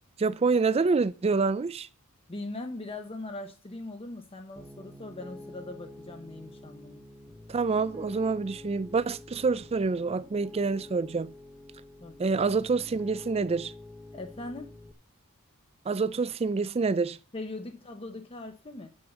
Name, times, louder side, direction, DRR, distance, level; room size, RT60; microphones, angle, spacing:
voice 1, 0.2-1.9 7.5-11.3 12.2-13.7 15.9-17.2, right 4 dB, 30° right, 0.4 m, -27 dB
voice 2, 2.3-7.0 12.0-12.2 14.1-14.7 17.3-18.9, left 2 dB, 25° left, 0.9 m, -40 dB
Piano, 4.6-14.9, left 2 dB, 5° right, 0.9 m, -47 dB
8.7 x 6.4 x 7.1 m
head